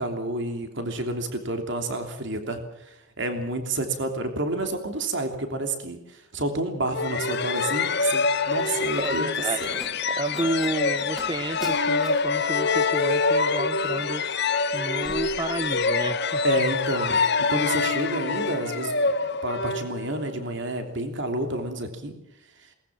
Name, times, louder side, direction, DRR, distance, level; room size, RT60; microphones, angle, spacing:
voice 1, 0.0-9.3 9.6-9.8 16.4-19.1 19.4-22.1 22.6-22.7, right 2 dB, 55° right, 6 dB, 3.0 m, -30 dB
sound 1, 6.9-20.4, left 4 dB, 50° left, 1.3 m, -25 dB
Slam, 7.7-16.2 16.5-17.0, left 1 dB, ahead, 3.3 m, -46 dB
voice 2, 8.6-9.8 10.1-14.2 14.7-16.4, right 1 dB, 20° right, 15 dB, 0.9 m, -31 dB
22.0 x 19.5 x 7.5 m, 0.84 s
head